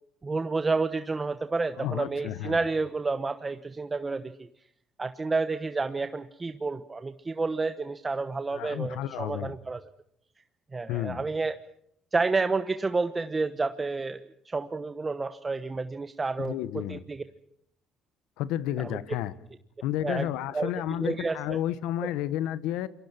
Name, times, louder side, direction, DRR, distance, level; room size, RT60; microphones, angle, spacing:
voice 1, 0.2-4.5 5.0-9.8 10.7-11.6 12.1-17.2 18.8-19.0 20.0-20.3 20.5-20.7 21.0-21.6, right 3 dB, 25° right, 1.1 m, -30 dB
voice 2, 1.8-2.6 8.5-9.6 10.9-11.2 16.4-17.0 18.4-19.3 19.8-22.9, left 12 dB, 85° left, 1.2 m, -31 dB
28.0 x 23.5 x 6.0 m
supercardioid pair, 80°, 0 cm